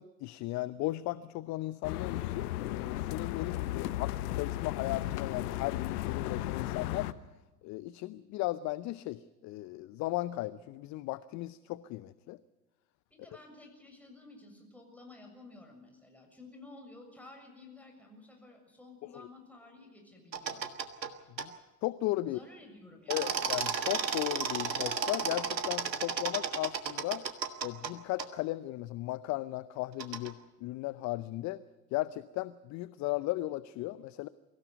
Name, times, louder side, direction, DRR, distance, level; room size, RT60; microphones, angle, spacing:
voice 1, 0.0-7.1 7.6-12.4 19.1-19.3 21.4-21.5 21.8-22.4 23.1-27.2 27.6-31.6 31.9-34.3, left 17 dB, 35° left, 17 dB, 0.7 m, -36 dB
sound 1, 1.8-7.1, left 14 dB, 65° left, 1.1 m, -35 dB
voice 2, 13.1-20.6 22.2-23.5, left 2 dB, 5° left, 2 dB, 7.0 m, -53 dB
sound 2, 20.3-21.1 21.4-21.5 23.1-27.9 28.2-28.3 30.0-30.3, right 6 dB, 85° right, 1.6 m, -33 dB
24.0 x 16.0 x 8.1 m, 1.1 s
figure-of-eight pair, 80°, 49 cm